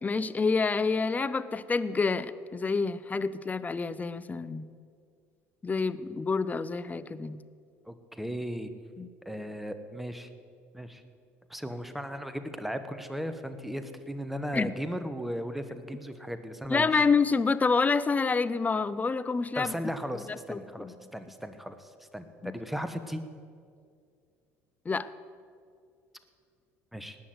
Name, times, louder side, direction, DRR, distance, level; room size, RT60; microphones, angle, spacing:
voice 1, 0.0-4.7 5.6-7.4 9.0-9.1 14.5-14.7 16.7-19.7 20.5-20.9 22.4-22.5 24.9-25.1, left 4 dB, 20° left, 15 dB, 0.6 m, -28 dB
voice 2, 7.9-8.7 9.2-10.3 10.7-11.0 11.5-17.0 19.6-23.2 26.9-27.2, equal, ahead, 9 dB, 1.2 m, -36 dB
18.5 x 6.4 x 8.0 m, 2.2 s
hypercardioid pair, 70°, 7 cm